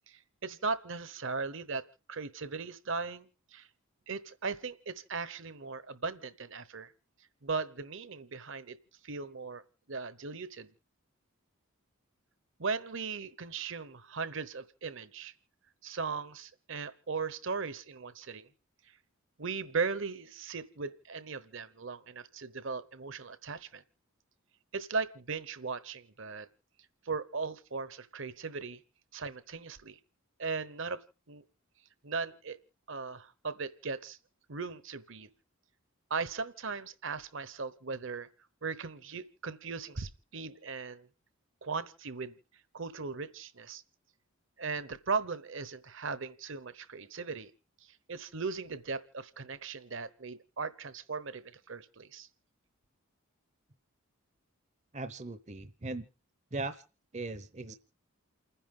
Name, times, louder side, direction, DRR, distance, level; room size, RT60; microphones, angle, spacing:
voice 1, 0.1-3.7 4.1-6.9 7.4-8.8 9.0-9.6 9.9-10.7 12.6-15.3 15.8-18.5 19.4-23.8 24.7-26.5 27.0-28.8 29.1-30.0 30.4-31.0 31.3-31.4 32.0-32.6 32.9-34.2 34.5-35.3 36.1-38.3 38.6-41.1 41.6-42.4 42.7-43.8 44.6-47.5 48.1-52.3, right 4 dB, 60° right, 15 dB, 1.0 m, -38 dB
voice 2, 54.9-56.1 56.5-56.8 57.1-57.8, right 3 dB, 30° right, 12 dB, 0.7 m, -38 dB
29.0 x 10.0 x 3.7 m, 0.35 s
head